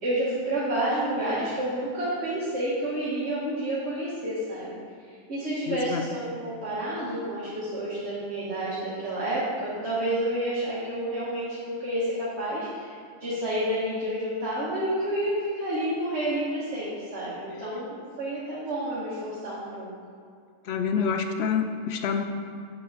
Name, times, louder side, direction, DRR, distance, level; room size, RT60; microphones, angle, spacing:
voice 1, 0.0-4.7 5.0-12.9 13.2-19.9, right 1 dB, 55° right, -8 dB, 1.6 m, -29 dB
voice 2, 5.7-6.1 20.6-22.2, left 6 dB, 65° left, 5 dB, 0.7 m, -27 dB
7.4 x 6.3 x 4.0 m, 2.3 s
omnidirectional pair, 1.4 m